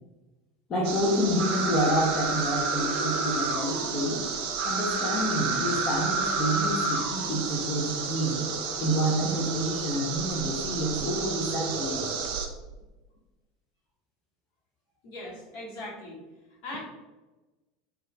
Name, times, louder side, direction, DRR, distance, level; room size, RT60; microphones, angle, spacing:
voice 1, 0.7-4.2 4.6-8.5 8.8-12.1, equal, 40° left, -4 dB, 0.5 m, -28 dB
sound 1, 0.8-12.5, right 4 dB, 60° right, 0.4 m, -30 dB
voice 2, 15.0-16.2 16.6-16.8, left 2 dB, 60° left, -5 dB, 1.1 m, -39 dB
2.3 x 2.3 x 3.1 m, 1.1 s
figure-of-eight pair, 75°, 0 cm